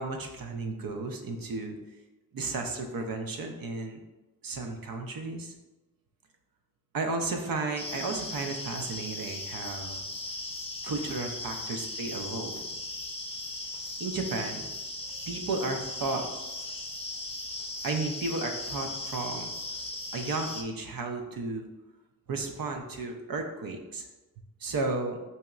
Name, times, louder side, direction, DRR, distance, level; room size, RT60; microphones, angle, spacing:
voice 1, 0.0-1.8 2.3-4.0 4.4-5.5 6.9-10.0 10.8-12.7 14.0-14.7 15.2-16.3 17.8-19.5 20.1-21.7 22.3-24.1 24.6-25.2, right 3 dB, 60° right, 4 dB, 0.6 m, -33 dB
sound 1, 7.8-20.6, left 2 dB, 15° left, 0.6 m, -38 dB
4.1 x 2.8 x 2.4 m, 1.1 s
cardioid pair, 40°, 40 cm